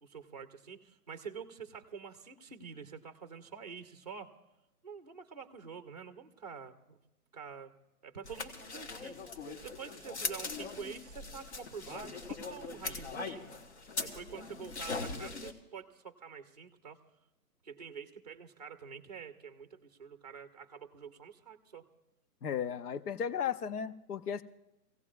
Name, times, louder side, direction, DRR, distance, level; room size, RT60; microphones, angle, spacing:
voice 1, 0.0-4.3 4.8-7.0 7.3-7.7 8.0-9.2 9.6-13.5 14.0-17.0 17.6-21.8, right 6 dB, 25° right, 8 dB, 0.6 m, -47 dB
sound 1, 8.2-15.5, left 4 dB, 45° left, 1.3 m, -41 dB
voice 2, 22.4-24.4, left 8 dB, 70° left, 13 dB, 0.9 m, -35 dB
23.5 x 16.5 x 2.4 m, 0.95 s
hypercardioid pair, 175°, 47 cm